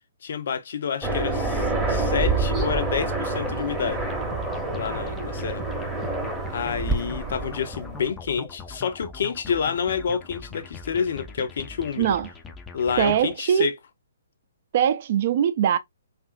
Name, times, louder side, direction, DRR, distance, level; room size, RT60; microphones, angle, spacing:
voice 1, 0.2-4.1 4.7-5.6 6.5-12.1 12.7-13.7, left 7 dB, 60° left, 0.6 m, -28 dB
Aircraft, 1.0-8.1, right 2 dB, 5° right, 0.8 m, -27 dB
sound 1, 3.0-13.3, left 4 dB, 15° left, 0.4 m, -42 dB
voice 2, 12.0-12.3 13.0-13.7 14.7-15.8, right 9 dB, 50° right, 0.4 m, -21 dB
2.7 x 2.5 x 2.3 m
hypercardioid pair, 135°, 0 cm